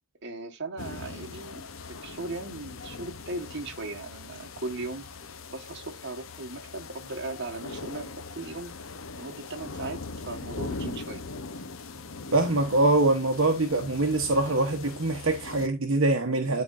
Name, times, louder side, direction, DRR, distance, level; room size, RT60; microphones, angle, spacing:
voice 1, 0.2-1.6 2.0-5.1 5.5-8.7 9.1-10.0 10.2-11.2, right 2 dB, 55° right, 1.6 m, -37 dB
sound 1, 0.8-15.7, left 3 dB, 70° left, 0.9 m, -41 dB
voice 2, 12.3-16.6, right 2 dB, 70° right, 1.1 m, -24 dB
12.0 x 4.4 x 2.6 m
head